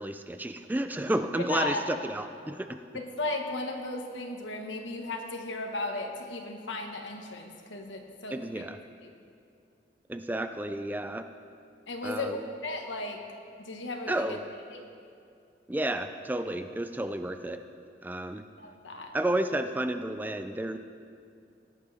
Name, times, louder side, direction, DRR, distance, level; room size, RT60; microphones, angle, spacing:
voice 1, 0.0-2.8 8.3-8.8 10.1-11.3 12.0-12.4 14.1-14.4 15.7-17.6 18.0-18.4 19.1-20.8, right 1 dB, 10° right, 8 dB, 0.3 m, -31 dB
voice 2, 1.3-1.8 2.9-8.6 9.0-9.1 11.9-12.4 12.6-13.2 13.6-14.4 14.7-14.8 18.6-19.1, left 2 dB, 90° left, 3 dB, 1.4 m, -35 dB
18.0 x 11.0 x 3.5 m, 2.5 s
head